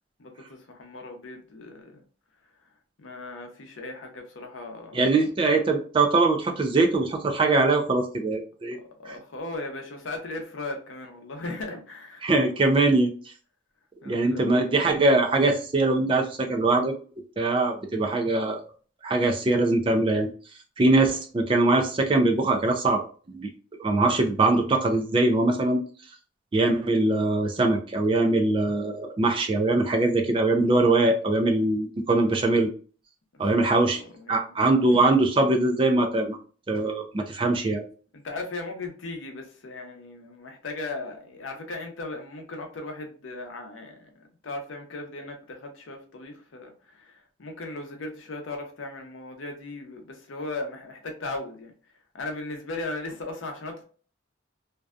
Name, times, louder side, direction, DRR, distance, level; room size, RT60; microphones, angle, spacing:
voice 1, 0.2-2.0 2.6-2.7 3.0-5.0 8.7-12.3 14.0-14.7 33.5-34.5 34.8-35.0 38.1-44.1 44.4-53.8, left 2 dB, 80° left, 4 dB, 0.6 m, -37 dB
voice 2, 4.9-8.8 12.2-13.1 14.1-16.9 17.4-18.6 19.0-20.3 20.8-23.0 23.3-23.5 23.8-25.8 26.5-32.7 33.4-34.0 34.3-36.4 36.7-37.8, right 2 dB, 25° right, 4 dB, 0.3 m, -22 dB
2.6 x 2.2 x 2.3 m, 0.41 s
head